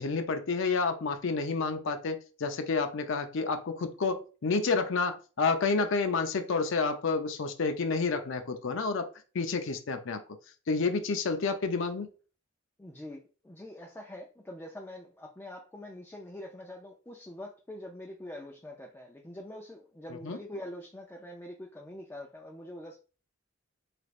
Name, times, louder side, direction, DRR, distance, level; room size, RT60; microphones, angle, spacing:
voice 1, 0.0-9.1 9.3-10.2 10.7-12.1 20.2-20.4, left 4 dB, 65° left, 0.5 m, -29 dB
voice 2, 12.8-23.0, left 1 dB, 10° left, 0.3 m, -44 dB
3.3 x 3.0 x 2.4 m
head